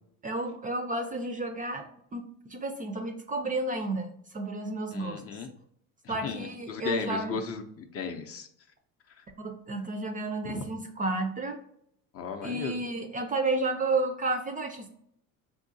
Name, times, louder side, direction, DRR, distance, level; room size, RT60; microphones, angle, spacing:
voice 1, 0.2-5.2 6.1-7.4 9.4-11.6 12.4-14.9, right 2 dB, 20° right, 5 dB, 0.4 m, -31 dB
voice 2, 4.9-5.5 6.0-8.5 9.2-9.3 10.4-10.6 12.1-12.8, left 6 dB, 40° left, 5 dB, 0.5 m, -36 dB
3.6 x 2.7 x 2.6 m, 0.70 s
supercardioid pair, 95°, 38 cm